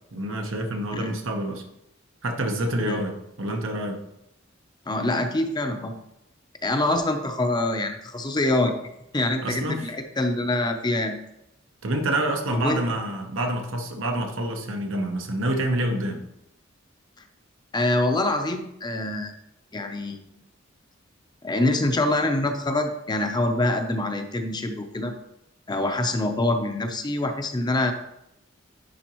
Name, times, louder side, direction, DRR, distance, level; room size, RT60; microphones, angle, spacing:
voice 1, 0.1-1.6 2.2-4.0 9.4-9.9 11.8-16.2, right 1 dB, 90° right, 4 dB, 1.0 m, -27 dB
voice 2, 4.9-5.9 6.6-8.7 9.1-11.2 12.5-12.8 17.7-19.3 19.7-20.3 21.4-25.1 25.7-27.9, left 2 dB, 20° left, 6 dB, 0.6 m, -25 dB
10.5 x 3.9 x 3.0 m, 0.82 s
head